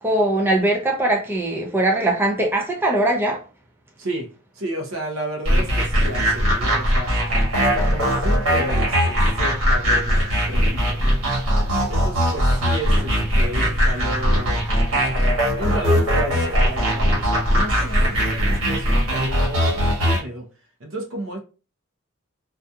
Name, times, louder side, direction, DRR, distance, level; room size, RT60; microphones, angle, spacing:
voice 1, 0.0-3.4, right 1 dB, 10° right, 0.5 m, -21 dB
voice 2, 4.0-4.3 4.5-7.1 7.5-11.0 11.9-14.7 15.5-20.5 20.8-21.4, right 1 dB, 65° right, 0.7 m, -32 dB
sound 1, 5.4-20.2, equal, 85° right, 1.4 m, -20 dB
2.7 x 2.4 x 2.3 m
head